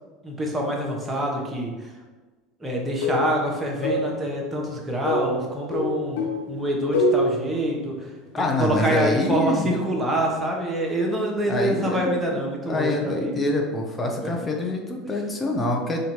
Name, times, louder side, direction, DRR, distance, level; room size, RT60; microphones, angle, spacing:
voice 1, 0.2-2.0 2.6-6.2 6.5-13.3 14.2-14.3, right 1 dB, 15° right, -1 dB, 1.1 m, -26 dB
sound 1, 2.8-3.5 3.8-4.2 5.0-6.5 6.9-7.4, left 1 dB, 70° left, 0.7 m, -24 dB
voice 2, 8.3-9.7 11.4-12.2 12.7-16.0, left 1 dB, 20° left, 1 dB, 0.8 m, -25 dB
4.2 x 2.5 x 4.5 m, 1.3 s
figure-of-eight pair, 75°, 0 cm